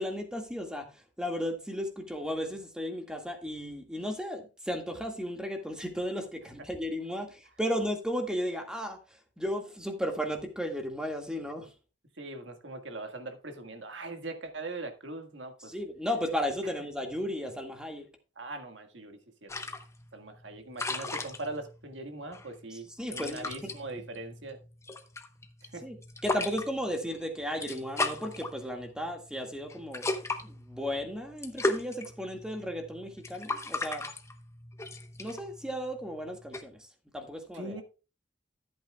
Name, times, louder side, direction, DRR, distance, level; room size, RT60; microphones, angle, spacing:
voice 1, 0.0-11.7 15.7-18.1 22.7-23.7 25.8-30.1 30.4-34.1 35.2-36.9 37.1-37.8, equal, 5° right, 1.8 m, -35 dB
voice 2, 12.2-15.7 18.4-19.5 20.1-24.6 25.7-25.9 37.5-37.8, right 2 dB, 70° right, 1.7 m, -41 dB
sound 1, 19.5-36.6, left 2 dB, 15° left, 0.9 m, -38 dB
14.0 x 8.5 x 2.3 m
head